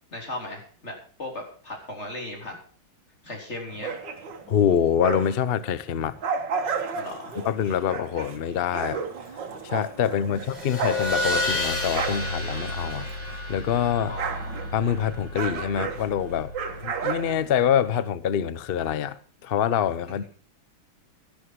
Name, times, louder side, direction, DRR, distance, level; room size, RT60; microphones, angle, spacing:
voice 1, 0.1-2.6 3.2-4.0 6.9-7.4 13.0-13.1 14.1-14.2 20.1-20.3, left 2 dB, 35° left, 4.0 m, -37 dB
sound 1, 3.7-5.5 5.9-13.5 13.8-18.0, right 5 dB, 65° right, 2.2 m, -33 dB
voice 2, 4.5-6.2 7.4-9.0 9.6-13.1 13.5-14.1 14.7-16.5 16.8-20.3, left 9 dB, 80° left, 0.5 m, -25 dB
sound 2, 10.3-17.4, left 1 dB, 65° left, 6.0 m, -31 dB
13.5 x 11.0 x 4.7 m
omnidirectional pair, 2.1 m